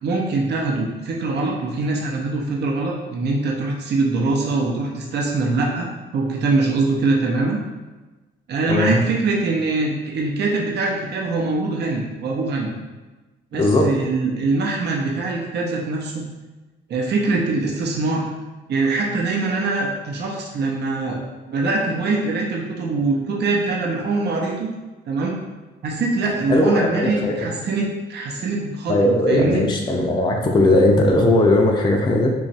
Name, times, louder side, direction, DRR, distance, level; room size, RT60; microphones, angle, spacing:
voice 1, 0.0-7.6 8.5-12.7 13.5-16.2 16.9-18.2 18.7-21.2 21.5-24.7 25.1-25.3 25.8-29.6, right 3 dB, 60° right, -1 dB, 0.7 m, -23 dB
voice 2, 8.7-9.0 13.6-13.9 26.5-27.3 28.9-32.3, left 1 dB, 20° left, 0 dB, 0.5 m, -18 dB
3.0 x 2.4 x 4.1 m, 1.2 s
cardioid pair, 90°, 20 cm